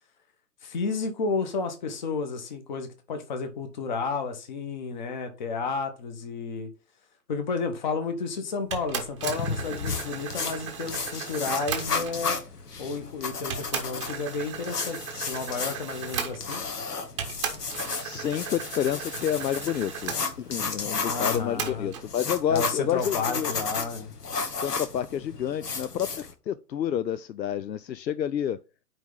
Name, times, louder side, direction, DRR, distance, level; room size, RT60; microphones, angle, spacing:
voice 1, 0.6-6.7 7.3-12.4 12.8-16.6 21.1-21.9 22.5-24.1, left 4 dB, 30° left, 1.0 m, -32 dB
sound 1, 8.7-12.3 13.0-13.1 13.5-16.8 17.2-20.2 21.6-22.1, right 7 dB, 20° right, 0.8 m, -36 dB
sound 2, 9.2-26.3, left 4 dB, 70° left, 1.5 m, -34 dB
voice 2, 18.0-20.1 20.5-23.6 24.5-28.6, left 9 dB, 90° left, 0.5 m, -29 dB
9.0 x 3.4 x 3.8 m
figure-of-eight pair, 145°, 49 cm